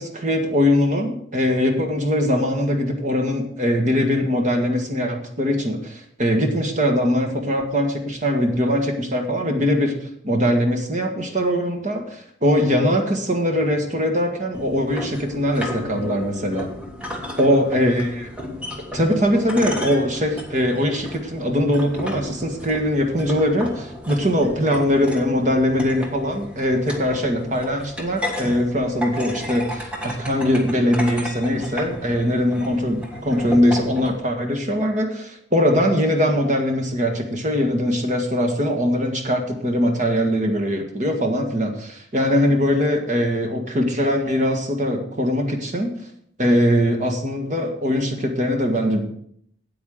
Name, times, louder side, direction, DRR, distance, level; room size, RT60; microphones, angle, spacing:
voice 1, 0.0-16.7 17.4-18.3 18.9-45.9 46.4-49.0, equal, 40° right, 3 dB, 1.7 m, -21 dB
sound 1, 14.5-34.1, left 1 dB, 5° right, 1.5 m, -34 dB
8.7 x 8.6 x 6.4 m, 0.66 s
head